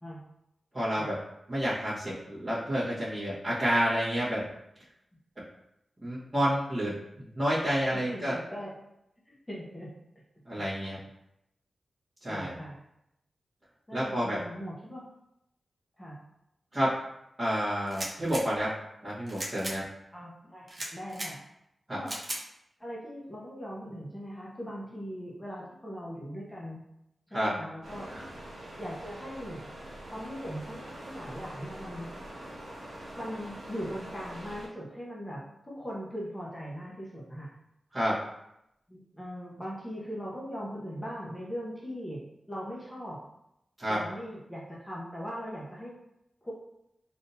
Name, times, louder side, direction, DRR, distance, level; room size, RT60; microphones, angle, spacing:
voice 1, 0.7-1.2 1.5-4.4 6.0-8.4 10.5-11.0 12.2-12.6 13.9-14.4 16.7-16.9 17.4-18.7 19.0-19.8 21.9-22.0 27.3-27.5 28.1-28.2 37.9-38.2 43.8-44.0, equal, 20° right, -13 dB, 1.3 m, -29 dB
voice 2, 7.9-8.7 9.3-9.9 10.9-11.0 12.3-12.8 13.9-15.1 16.0-16.2 20.1-21.5 21.9-22.2 22.8-26.8 27.3-28.1 28.8-29.7 30.0-32.1 33.1-37.6 38.9-43.3 43.9-46.0 46.4-46.5, equal, 15° left, -4 dB, 0.8 m, -40 dB
sound 1, 17.9-18.4 19.3-19.8 20.7-21.3 22.1-22.4, right 1 dB, 40° right, 0.7 m, -36 dB
sound 2, 27.8-34.7, right 1 dB, 80° right, 1.2 m, -44 dB
3.6 x 2.6 x 2.7 m, 0.81 s
wide cardioid pair, 80°, 0 cm